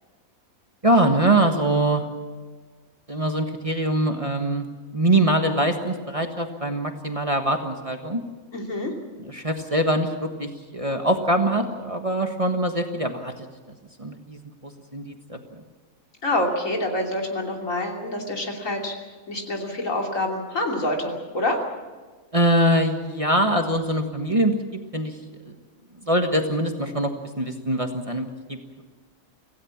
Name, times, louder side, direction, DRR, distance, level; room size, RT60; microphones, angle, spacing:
voice 1, 0.8-2.0 3.1-4.7 4.9-8.2 9.3-10.1 10.4-13.3 14.0-14.4 14.9-15.4 22.3-24.5 24.9-25.1 26.1-27.1 27.4-28.8, right 1 dB, 25° right, 4 dB, 1.5 m, -23 dB
voice 2, 8.5-8.9 16.2-18.9 19.3-21.6, left 1 dB, 65° left, 1 dB, 3.5 m, -26 dB
25.5 x 16.5 x 7.3 m, 1.4 s
omnidirectional pair, 1.5 m